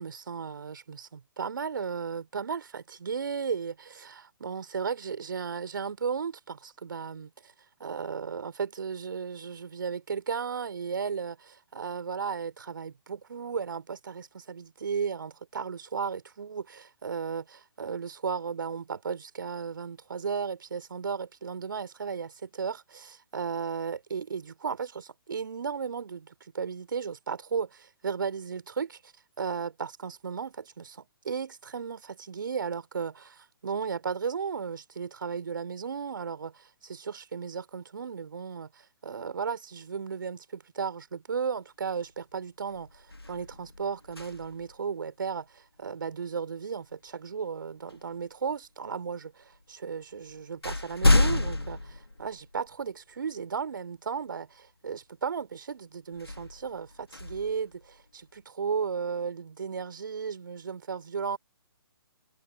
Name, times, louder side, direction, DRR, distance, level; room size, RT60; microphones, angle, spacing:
voice 1, 0.0-7.5 7.8-29.1 29.4-61.4, right 6 dB, 60° right, 4.3 m, -35 dB
sound 1, 42.0-42.3 42.7-44.8 46.9-47.1 47.9-48.7 49.5-49.6 50.0-52.9 53.4-53.5 56.1-58.3, left 2 dB, 85° left, 2.0 m, -29 dB
figure-of-eight pair, 130°, 12 cm